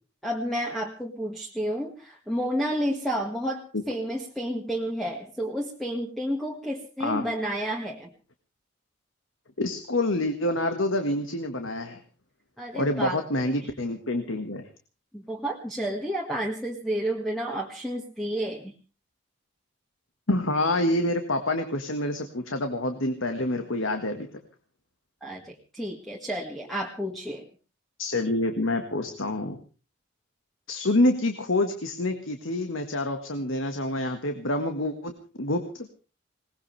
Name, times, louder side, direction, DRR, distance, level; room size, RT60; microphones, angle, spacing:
voice 1, 0.2-8.1 12.6-13.2 15.1-18.7 25.2-27.4, equal, ahead, 0 dB, 1.7 m, -31 dB
voice 2, 9.6-12.0 12.7-14.7 20.3-24.3 28.0-29.6 30.7-35.9, left 1 dB, 70° left, 6 dB, 1.7 m, -27 dB
21.0 x 19.0 x 3.4 m, 0.35 s
head